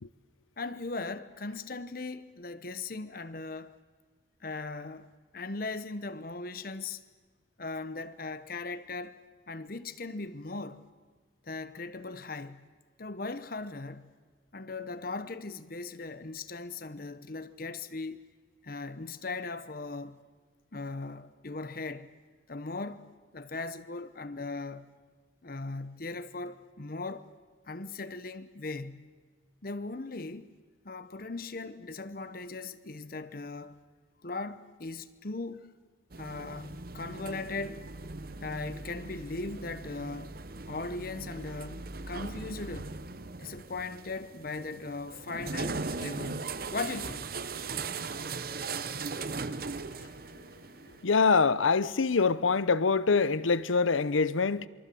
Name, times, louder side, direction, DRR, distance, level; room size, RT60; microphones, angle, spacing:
voice 1, 0.6-3.7 4.4-7.0 7.6-9.2 9.5-10.8 11.4-12.6 13.0-14.1 14.5-18.2 18.6-20.2 20.7-22.1 22.5-24.9 25.4-27.3 27.7-29.1 29.6-30.5 30.8-33.8 34.2-35.7 36.2-37.9 38.4-40.4 40.6-42.9 43.4-47.2, left 3 dB, 45° left, 0.9 m, -38 dB
sound 1, 36.1-51.0, right 4 dB, 50° right, 0.9 m, -39 dB
voice 2, 51.0-54.7, left 4 dB, 85° left, 0.8 m, -24 dB
27.0 x 23.5 x 7.7 m
head